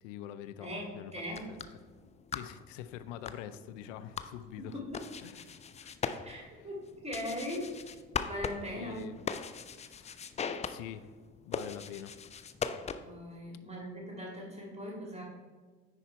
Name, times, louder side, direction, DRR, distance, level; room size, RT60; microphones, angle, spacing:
voice 1, 0.0-1.1 1.5-1.6 2.3-4.8 5.2-5.9 6.3-6.7 8.7-9.2 9.8-10.1 10.7-11.1 11.4-12.2, left 11 dB, 70° left, 12 dB, 0.6 m, -45 dB
voice 2, 0.6-1.5 4.6-5.1 6.2-7.8 8.2-9.0 13.0-15.2, equal, 15° right, -2 dB, 2.0 m, -40 dB
sound 1, 1.2-13.3, left 6 dB, 20° left, 0.4 m, -41 dB
9.8 x 4.2 x 4.5 m, 1.4 s
figure-of-eight pair, 45°, 40 cm